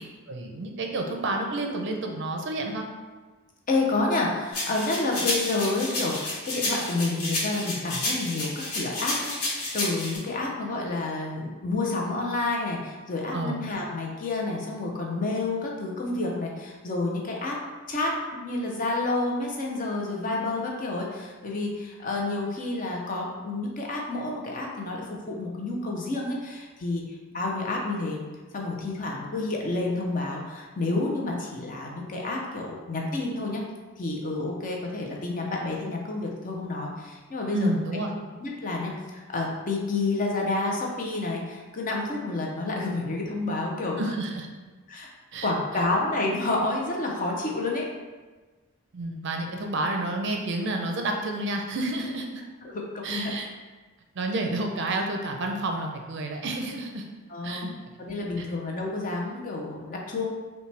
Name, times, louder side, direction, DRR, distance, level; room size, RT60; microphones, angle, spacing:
voice 1, 0.3-2.9 13.3-13.7 37.5-38.1 44.0-44.5 45.3-45.5 48.9-52.4 53.0-53.5 54.2-57.0 57.4-57.7 58.4-58.5, right 2 dB, 50° right, 2 dB, 0.5 m, -30 dB
voice 2, 3.7-17.6 17.9-28.2 28.5-33.6 34.0-37.7 38.4-44.0 44.9-45.1 45.4-47.9 52.6-53.3 57.3-57.7 58.0-60.2, left 2 dB, 35° left, -1 dB, 0.6 m, -29 dB
sound 1, 4.5-10.2, left 1 dB, 85° left, 1.1 m, -30 dB
5.4 x 2.2 x 3.2 m, 1.3 s
head